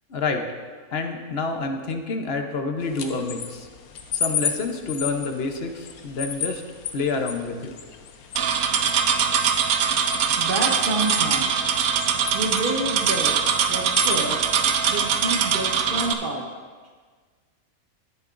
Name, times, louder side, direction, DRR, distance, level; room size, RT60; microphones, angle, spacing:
voice 1, 0.1-0.5 0.9-3.7 4.1-6.6 6.9-7.7, left 4 dB, 50° left, 4 dB, 1.0 m, -28 dB
sound 1, 2.8-15.2, left 7 dB, 80° left, 1.2 m, -34 dB
sound 2, 8.4-16.1, right 7 dB, 80° right, 1.1 m, -22 dB
voice 2, 10.4-11.7 12.3-14.5 14.9-16.5, right 2 dB, 40° right, 0 dB, 1.4 m, -29 dB
19.0 x 6.8 x 2.6 m, 1.5 s
omnidirectional pair, 1.5 m